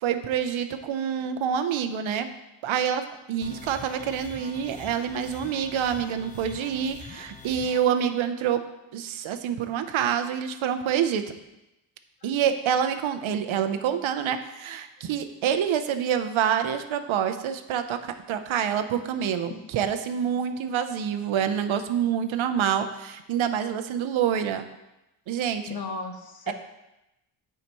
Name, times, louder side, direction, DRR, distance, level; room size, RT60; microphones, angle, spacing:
voice 1, 0.0-2.3 2.6-8.6 8.9-11.3 12.2-24.6 25.3-25.8 26.5-26.6, right 8 dB, 85° right, 9 dB, 0.8 m, -27 dB
sound 1, 3.4-7.8, left 4 dB, 15° left, 0.5 m, -44 dB
voice 2, 25.7-26.5, left 4 dB, 50° left, 4 dB, 1.1 m, -35 dB
14.0 x 4.9 x 3.0 m, 0.93 s
wide cardioid pair, 155°, 46 cm